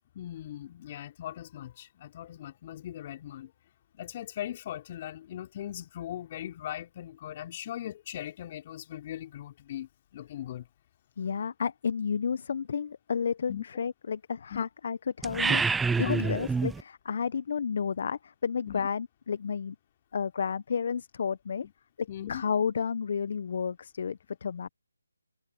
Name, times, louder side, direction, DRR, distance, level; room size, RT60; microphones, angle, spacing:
voice 1, 0.2-3.5 3.9-10.7 13.5-13.6 14.5-14.6 16.0-16.3 18.7-18.9 22.1-22.4, left 12 dB, 30° left, 3.5 m, -39 dB
voice 2, 11.2-19.8 20.1-21.7 22.0-24.7, left 6 dB, 45° left, 0.9 m, -31 dB
sound 1, 15.2-16.8, right 4 dB, 5° right, 0.5 m, -27 dB
figure-of-eight pair, 155°, 0 cm